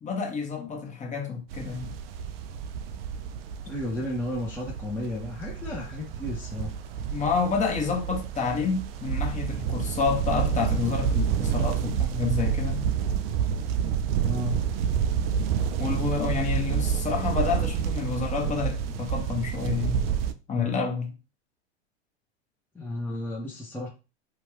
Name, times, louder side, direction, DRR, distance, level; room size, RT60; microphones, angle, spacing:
voice 1, 0.0-2.0 7.1-12.9 15.2-15.3 15.8-20.0 20.5-21.1, left 5 dB, 20° left, 1.1 m, -29 dB
sound 1, 1.5-20.3, right 8 dB, 60° right, 0.5 m, -29 dB
voice 2, 3.7-6.7 14.3-14.6 22.7-23.9, left 1 dB, 5° left, 0.7 m, -33 dB
2.8 x 2.3 x 3.2 m
hypercardioid pair, 95°, 33 cm